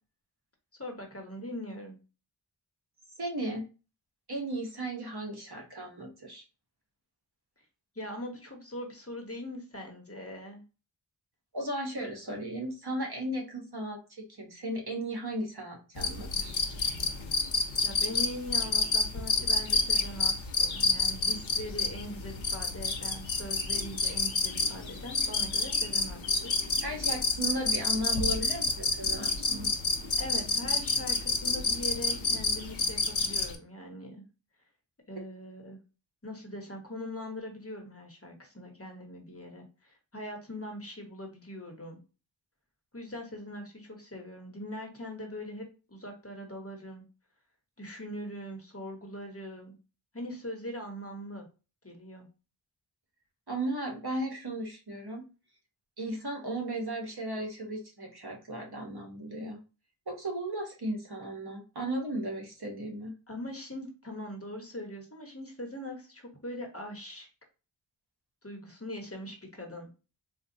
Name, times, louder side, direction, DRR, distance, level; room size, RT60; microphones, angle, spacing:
voice 1, 0.8-2.0 7.9-10.6 17.8-26.5 30.2-34.2 35.1-35.8 36.2-42.0 42.9-47.0 47.8-49.7 50.1-51.5 51.8-52.3 63.3-67.3 68.4-69.9, left 1 dB, 30° left, 2 dB, 1.0 m, -41 dB
voice 2, 3.2-3.6 4.3-6.4 11.5-16.6 26.8-29.7 53.5-55.2 56.0-59.6 60.1-63.1, right 1 dB, 55° right, 1 dB, 0.9 m, -35 dB
sound 1, 16.0-33.6, left 3 dB, 80° left, 0.7 m, -29 dB
3.9 x 2.2 x 2.7 m, 0.32 s
wide cardioid pair, 45°, 46 cm